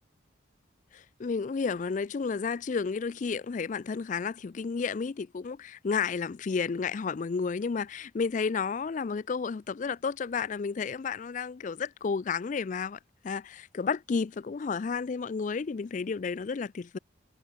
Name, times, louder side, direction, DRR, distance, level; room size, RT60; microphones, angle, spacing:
voice 1, 0.9-13.0 13.2-17.0, left 5 dB, 40° left, 0.3 m, -32 dB
head